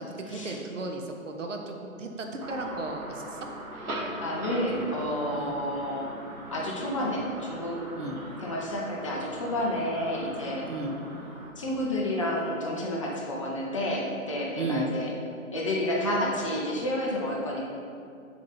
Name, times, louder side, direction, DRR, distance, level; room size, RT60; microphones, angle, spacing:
voice 1, 0.0-3.4 5.3-5.6 8.0-8.2 10.7-10.9 14.6-14.9, right 2 dB, 60° right, 3 dB, 1.1 m, -35 dB
sound 1, 2.4-11.5, right 1 dB, 85° right, 1.6 m, -40 dB
voice 2, 4.2-6.1 6.5-7.8 8.4-10.6 11.6-15.1 15.5-17.6, left 1 dB, 25° left, -3 dB, 0.7 m, -30 dB
7.0 x 4.9 x 5.8 m, 2.4 s
figure-of-eight pair, 145°, 41 cm